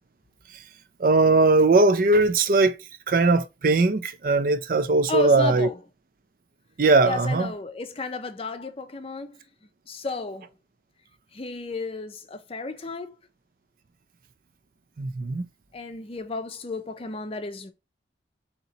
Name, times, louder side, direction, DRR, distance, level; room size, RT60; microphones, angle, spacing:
voice 1, 1.0-2.8 3.1-5.7 6.8-7.5 15.0-15.4, right 3 dB, 50° right, 0.5 m, -20 dB
voice 2, 5.1-5.8 7.0-9.4 9.9-10.5 11.3-13.1 15.7-17.7, left 3 dB, 30° left, 0.5 m, -33 dB
4.2 x 2.9 x 4.0 m
head